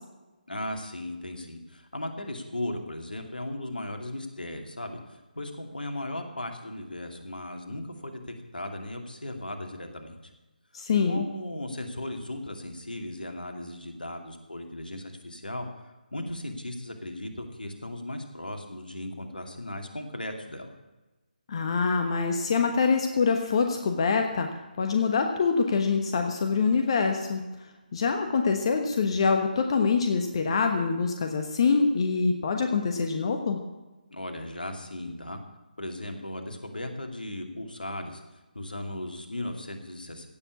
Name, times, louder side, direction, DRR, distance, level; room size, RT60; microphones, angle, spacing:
voice 1, 0.5-10.2 11.1-15.7 16.1-20.7 34.1-35.4 35.8-38.2 38.5-40.3, left 1 dB, 75° left, 4 dB, 2.5 m, -37 dB
voice 2, 10.7-11.2 21.5-24.5 24.8-27.4 27.9-33.6, left 5 dB, 35° left, 5 dB, 1.2 m, -25 dB
17.0 x 7.1 x 8.3 m, 1.1 s
figure-of-eight pair, 150°, 5 cm